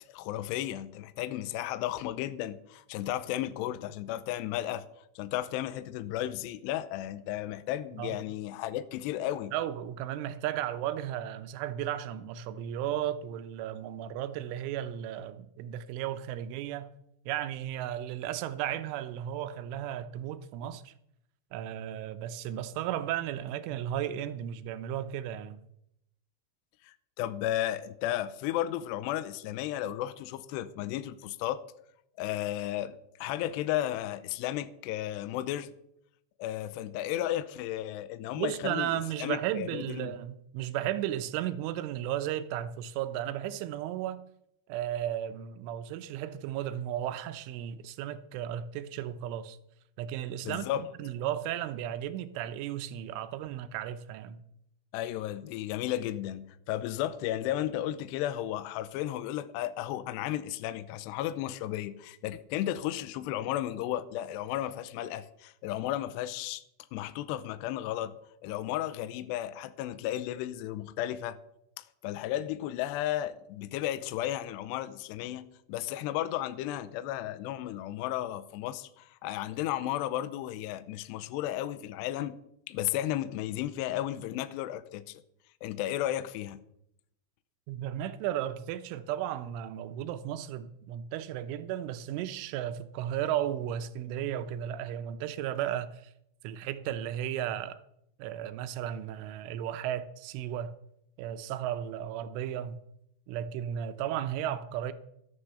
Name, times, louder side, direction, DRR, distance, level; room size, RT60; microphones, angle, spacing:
voice 1, 0.1-4.8 5.2-9.5 26.8-31.6 32.2-35.7 36.4-38.9 39.2-40.1 50.4-50.8 54.9-66.6 66.9-68.1 68.4-71.4 71.8-82.4 82.7-85.2 85.6-86.6, left 13 dB, 80° left, 2.6 m, -34 dB
voice 2, 9.5-16.9 17.3-20.9 21.5-25.6 38.4-44.2 44.7-49.6 50.0-54.4 87.7-96.1 96.4-97.8 98.2-100.7 101.2-102.8 103.3-104.9, right 11 dB, 85° right, 3.2 m, -34 dB
13.0 x 9.8 x 6.9 m
omnidirectional pair, 5.5 m